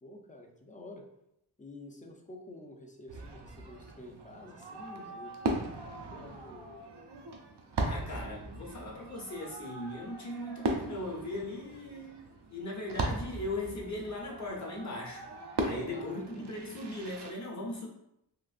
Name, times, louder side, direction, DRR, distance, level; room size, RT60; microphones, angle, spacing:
voice 1, 0.0-1.1 1.6-5.7 6.1-6.7 7.8-8.4 15.9-16.6, left 1 dB, 20° left, 2 dB, 0.5 m, -49 dB
Fireworks, 3.1-17.3, right 2 dB, 75° right, 0.6 m, -38 dB
voice 2, 7.8-12.2 12.5-15.2 15.6-17.9, left 1 dB, 40° left, -3 dB, 0.9 m, -38 dB
3.8 x 2.5 x 2.4 m, 0.79 s
wide cardioid pair, 105°, 41 cm